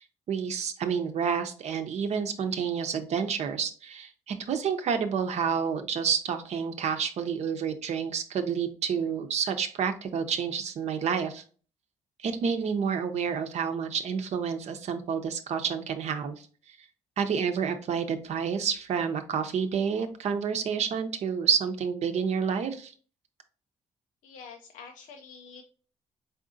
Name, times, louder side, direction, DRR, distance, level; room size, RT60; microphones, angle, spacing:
voice 1, 0.3-11.4 12.2-16.5 17.2-22.9, right 7 dB, 65° right, 7 dB, 0.7 m, -29 dB
voice 2, 24.2-25.6, left 5 dB, 85° left, 3 dB, 0.5 m, -47 dB
4.2 x 3.8 x 2.6 m, 0.42 s
cardioid pair, 80°, 13 cm